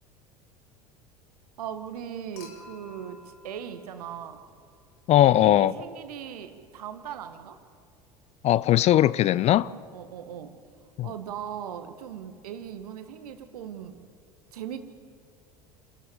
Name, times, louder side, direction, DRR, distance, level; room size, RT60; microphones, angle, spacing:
voice 1, 1.6-4.4 5.2-7.6 9.9-10.5 11.0-14.0 14.5-14.9, right 9 dB, 65° right, 1.6 m, -39 dB
Human group actions / Chink clink / Liquid, 2.4-4.7 6.2-6.3, left 3 dB, 65° left, 3.3 m, -51 dB
voice 2, 5.1-5.7 8.4-9.7 11.0-11.1, left 13 dB, 30° left, 0.4 m, -19 dB
28.0 x 13.5 x 7.8 m
figure-of-eight pair, 70°, 21 cm